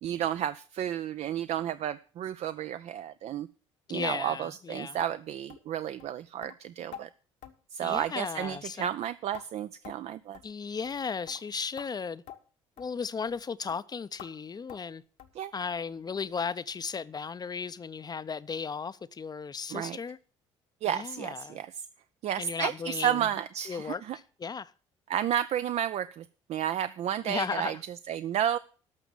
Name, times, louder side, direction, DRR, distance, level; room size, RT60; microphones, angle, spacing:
voice 1, 0.0-3.5 3.9-7.1 7.7-10.4 15.4-15.5 19.7-20.0 20.8-21.7 22.2-24.2 25.1-27.8 28.1-28.6, right 10 dB, 45° right, 0.4 m, -32 dB
voice 2, 3.9-5.0 7.8-8.9 10.4-12.2 12.8-15.0 15.5-20.2 20.8-21.6 22.4-23.3 23.7-24.7 27.2-27.8, left 5 dB, 25° left, 0.6 m, -35 dB
sound 1, 5.0-5.1 5.5-5.7 6.0-6.1 6.4-6.6 6.9-7.1 7.4-7.6 7.9-8.2 8.4-8.6 8.8-9.5 9.8-10.1 10.3-10.5 10.8-11.0 11.3-11.4 11.8-11.9 12.3-12.4 12.8-12.9 13.3-13.4 13.7-13.8 14.2-14.3 14.7-14.9 15.2-15.4 15.7-15.9 16.2-16.3 16.7-16.8 17.2-17.3, left 10 dB, 60° left, 1.1 m, -48 dB
13.0 x 5.9 x 7.3 m
figure-of-eight pair, 55°, 15 cm